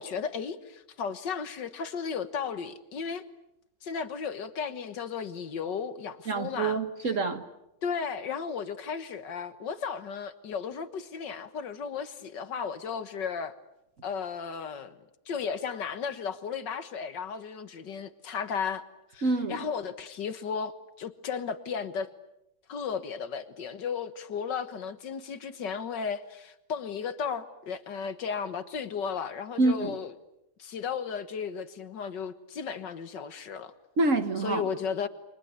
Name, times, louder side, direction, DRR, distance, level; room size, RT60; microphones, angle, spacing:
voice 1, 0.0-3.3 3.8-6.8 7.8-13.5 14.0-15.0 15.3-18.8 19.1-22.1 22.7-30.1 30.6-33.7 34.4-35.1, left 6 dB, 70° left, 2.0 m, -34 dB
voice 2, 6.3-7.4 19.2-19.6 29.6-29.9 34.0-34.6, right 3 dB, 45° right, 1.7 m, -26 dB
29.5 x 24.5 x 8.3 m
omnidirectional pair, 2.0 m